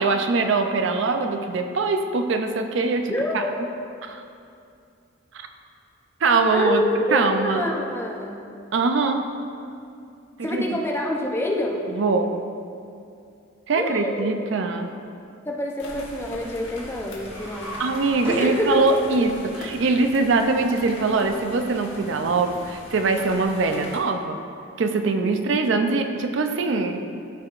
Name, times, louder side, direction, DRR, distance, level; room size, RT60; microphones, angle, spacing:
voice 1, 0.0-3.5 4.0-4.2 5.3-5.5 6.2-6.8 7.1-7.6 8.7-9.2 10.4-10.7 11.9-12.4 13.7-14.9 17.8-24.4 24.8-27.0, right 3 dB, 65° right, 6 dB, 0.5 m, -22 dB
voice 2, 3.1-4.0 6.5-8.3 10.4-11.8 13.7-14.3 15.5-17.8 18.3-18.9 25.2-25.3, left 1 dB, 10° left, -1 dB, 0.6 m, -27 dB
sound 1, 15.8-24.0, left 1 dB, 65° left, 1.3 m, -41 dB
sound 2, 17.2-19.2, equal, 25° right, 1.7 m, -36 dB
14.0 x 4.7 x 2.5 m, 2.5 s
head